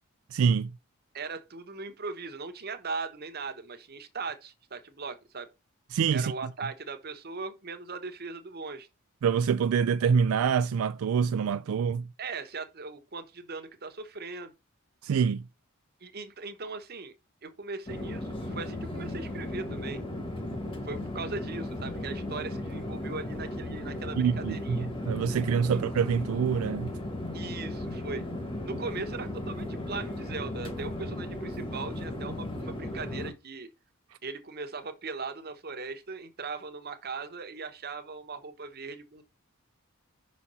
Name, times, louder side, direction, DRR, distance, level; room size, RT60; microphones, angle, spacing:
voice 1, 0.3-0.7 5.9-6.3 9.2-12.0 15.0-15.4 24.2-24.8 25.1-26.9, right 6 dB, 80° right, 0.3 m, -25 dB
voice 2, 1.1-5.5 6.1-8.9 12.2-14.5 16.0-17.1 17.4-20.0 20.8-24.9 25.7-25.8 27.3-28.2 28.6-33.7 34.2-39.2, right 4 dB, 45° right, 1.0 m, -39 dB
Chatter / Fixed-wing aircraft airplane, 17.9-33.3, left 1 dB, 25° left, 1.2 m, -36 dB
5.8 x 4.3 x 5.4 m
head